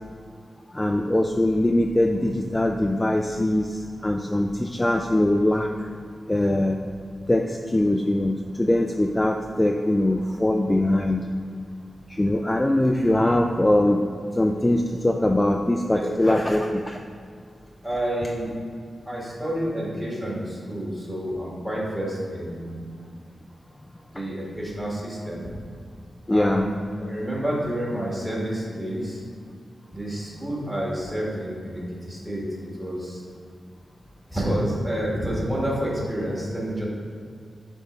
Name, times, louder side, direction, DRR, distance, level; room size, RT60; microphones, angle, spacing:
voice 1, 0.7-5.7 6.3-6.8 7.3-11.2 12.1-14.0 14.3-17.0 24.2-24.3 26.3-26.7, left 1 dB, 15° left, 3 dB, 0.3 m, -22 dB
voice 2, 15.9-16.6 17.8-18.5 19.1-22.7 24.1-25.5 26.3-26.7 27.0-29.2 29.9-33.2 34.3-36.9, equal, 10° right, -5 dB, 2.0 m, -29 dB
10.0 x 3.6 x 5.2 m, 2.2 s
wide cardioid pair, 150°, 0 cm